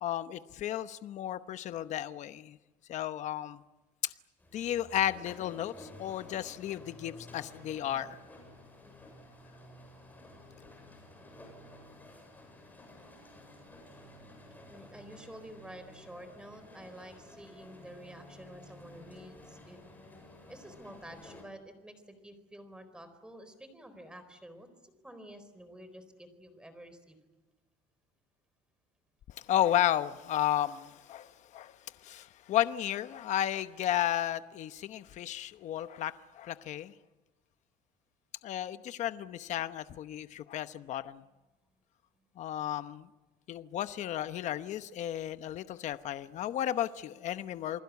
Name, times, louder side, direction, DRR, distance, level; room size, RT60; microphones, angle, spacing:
voice 1, 0.0-2.6 2.9-3.6 4.0-4.1 4.5-8.2 29.5-31.7 32.0-36.9 38.4-41.2 42.4-43.1 43.5-47.8, left 12 dB, 45° left, 12 dB, 0.9 m, -33 dB
sound 1, 4.4-21.4, left 1 dB, 10° left, 7.7 m, -52 dB
voice 2, 14.7-19.8 20.5-27.2 42.2-42.3, right 1 dB, 5° right, 10 dB, 4.2 m, -50 dB
28.5 x 20.5 x 8.3 m, 1.1 s
cardioid pair, 140°, 16 cm